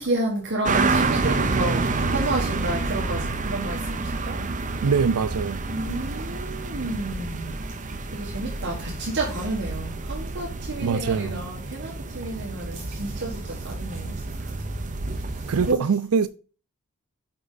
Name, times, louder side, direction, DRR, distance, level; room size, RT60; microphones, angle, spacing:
voice 1, 0.0-4.5 5.7-7.6 7.8-14.6 15.3-15.8, right 2 dB, 55° right, 1.5 m, -31 dB
sound 1, 0.6-15.7, right 3 dB, 35° right, 0.7 m, -29 dB
voice 2, 4.8-5.6 10.8-11.4 15.5-16.3, right 5 dB, 70° right, 0.5 m, -23 dB
6.1 x 5.1 x 4.0 m
head